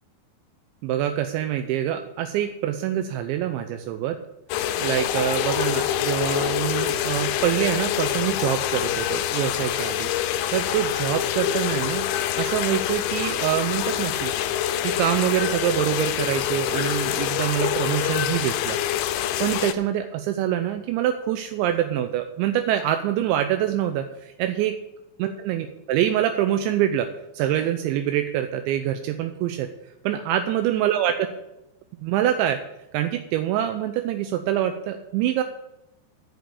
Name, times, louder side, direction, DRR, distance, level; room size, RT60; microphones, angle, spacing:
voice 1, 0.8-4.2 4.8-12.1 12.4-14.3 14.8-18.8 19.4-24.7 25.2-27.1 27.3-29.7 30.0-31.3 32.0-32.6 32.9-35.4, right 11 dB, 85° right, 7 dB, 3.0 m, -25 dB
sound 1, 4.5-19.7, left 11 dB, 85° left, 2.9 m, -26 dB
14.0 x 5.2 x 8.1 m, 0.90 s
omnidirectional pair, 5.3 m